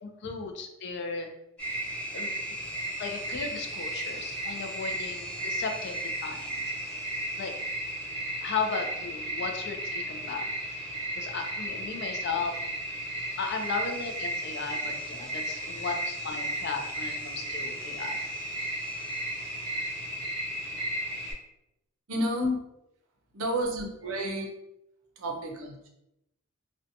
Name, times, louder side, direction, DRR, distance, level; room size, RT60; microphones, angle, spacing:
voice 1, 0.0-1.3 2.1-2.3 3.0-6.5 7.4-7.5 8.4-10.5 11.2-12.6 13.4-18.2, left 5 dB, 50° left, 3 dB, 0.4 m, -35 dB
sound 1, 1.6-21.3, right 1 dB, 5° left, 0.9 m, -34 dB
voice 2, 22.1-22.6 23.3-24.5 25.2-25.9, equal, 65° right, 1 dB, 0.5 m, -30 dB
2.6 x 2.2 x 2.6 m, 0.84 s
head